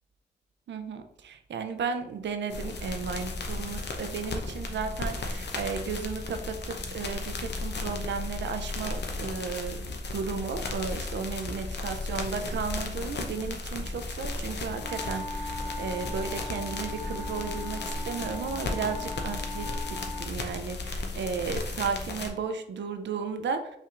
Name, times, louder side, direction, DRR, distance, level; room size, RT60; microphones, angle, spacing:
voice 1, 0.7-9.8 10.1-23.7, right 5 dB, 85° right, 8 dB, 0.5 m, -34 dB
sound 1, 2.5-22.3, left 3 dB, 75° left, 0.7 m, -35 dB
sound 2, 14.8-20.3, left 2 dB, 30° left, 0.6 m, -39 dB
5.5 x 3.3 x 2.5 m, 0.78 s
cardioid pair, 65°, 18 cm